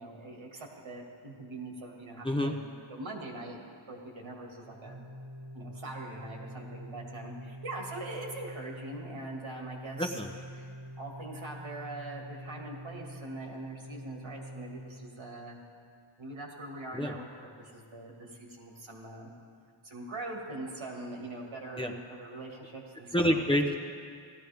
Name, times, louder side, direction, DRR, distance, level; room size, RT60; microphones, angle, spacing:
voice 1, 0.0-2.6 2.9-5.0 5.5-10.2 10.5-15.6 16.2-19.3 19.8-23.4, right 2 dB, 75° right, -1 dB, 2.3 m, -42 dB
Organ, 4.6-15.5, equal, 20° right, 1.5 m, -46 dB
voice 2, 10.0-10.3 16.9-17.1 21.8-21.9 23.1-23.7, equal, 10° left, 1 dB, 0.8 m, -27 dB
17.0 x 12.5 x 3.5 m, 2.2 s
cardioid pair, 75°, 48 cm